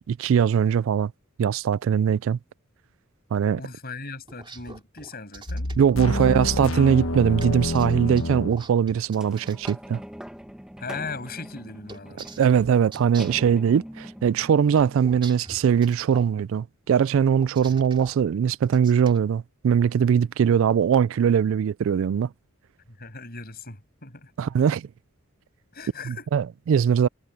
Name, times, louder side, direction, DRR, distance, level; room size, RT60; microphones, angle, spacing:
voice 1, 0.1-1.1 1.4-2.4 3.3-3.6 5.8-10.0 12.4-22.3 24.4-24.9 26.1-27.1, right 7 dB, 65° right, 0.3 m, -21 dB
voice 2, 3.6-5.7 10.8-12.5 17.6-17.8 22.9-24.3 25.7-26.3, left 4 dB, 45° left, 7.1 m, -38 dB
sound 1, 4.3-5.8 7.4-9.8 11.9-13.5 14.8-16.3 17.3-18.2 18.6-19.2, right 3 dB, 25° right, 3.1 m, -43 dB
sound 2, 5.5-8.7, left 1 dB, 75° left, 1.5 m, -28 dB
sound 3, 9.2-15.9 16.6-16.7, equal, 5° right, 1.5 m, -43 dB
head